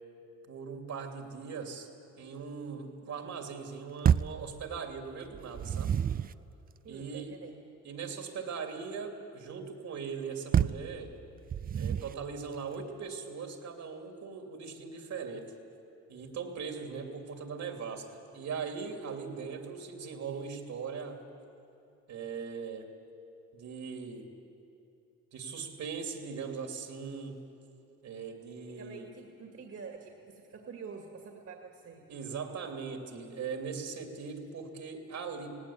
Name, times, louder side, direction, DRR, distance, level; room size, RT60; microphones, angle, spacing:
voice 1, 0.5-1.9 2.2-6.0 6.9-7.4 7.8-11.1 11.7-15.5 16.1-21.2 22.1-22.9 23.5-24.3 25.3-27.4 28.0-29.1 32.1-35.5, right 5 dB, 65° right, 4 dB, 2.7 m, -40 dB
sound 1, 4.0-4.4 5.3-6.4 10.5-10.9 11.5-12.2, right 8 dB, 30° right, 0.4 m, -28 dB
voice 2, 6.8-7.5 28.8-32.0, right 5 dB, 50° right, 2 dB, 2.1 m, -47 dB
18.0 x 17.5 x 8.5 m, 2.7 s
cardioid pair, 90°, 30 cm